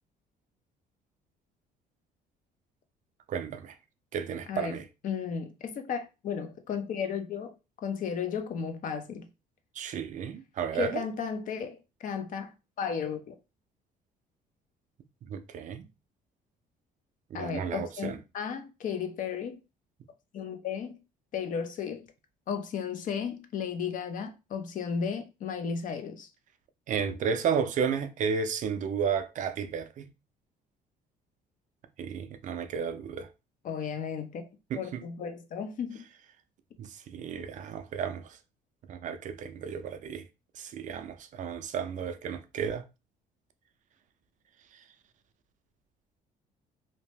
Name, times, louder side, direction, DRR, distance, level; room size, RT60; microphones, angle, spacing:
voice 1, 3.3-3.8 4.1-4.9 9.8-11.0 15.3-15.8 17.3-18.2 26.9-30.1 32.0-33.3 34.7-35.0 36.8-38.4 38.9-40.2 40.6-42.8, right 7 dB, 50° right, 0.4 m, -33 dB
voice 2, 5.0-7.5 7.8-9.3 10.7-12.5 12.8-13.4 17.3-19.6 20.3-21.0 21.3-22.1 22.5-26.3 33.6-34.4 34.7-36.0, left 6 dB, 50° left, 0.6 m, -34 dB
2.8 x 2.0 x 3.2 m
cardioid pair, 110°, 17 cm